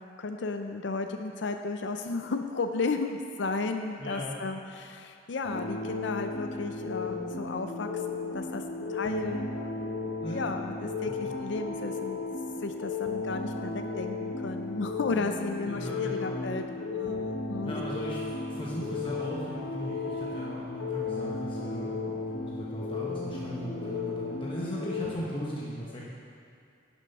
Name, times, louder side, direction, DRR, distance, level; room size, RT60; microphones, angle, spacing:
voice 1, 0.2-9.6 9.9-12.2 12.6-16.6 16.9-17.7, left 3 dB, 65° left, 6 dB, 0.5 m, -34 dB
voice 2, 4.0-4.4 10.2-10.5 15.7-16.5 17.6-18.2 18.5-26.1, equal, 25° left, -6 dB, 1.1 m, -38 dB
sound 1, 5.4-25.1, left 3 dB, 85° left, 1.1 m, -35 dB
11.5 x 7.4 x 5.5 m, 2.5 s
head